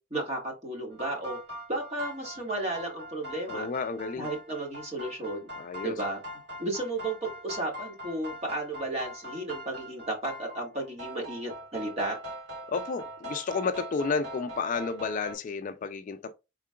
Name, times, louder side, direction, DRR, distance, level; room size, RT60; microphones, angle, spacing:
voice 1, 0.1-1.4 1.7-3.7 4.2-5.5 5.8-12.2, right 2 dB, 35° right, 1.7 m, -33 dB
sound 1, 0.9-15.3, equal, 60° right, 2.5 m, -42 dB
voice 2, 3.5-4.3 5.6-5.9 12.7-16.3, left 5 dB, 40° left, 0.3 m, -31 dB
4.7 x 3.7 x 2.2 m
head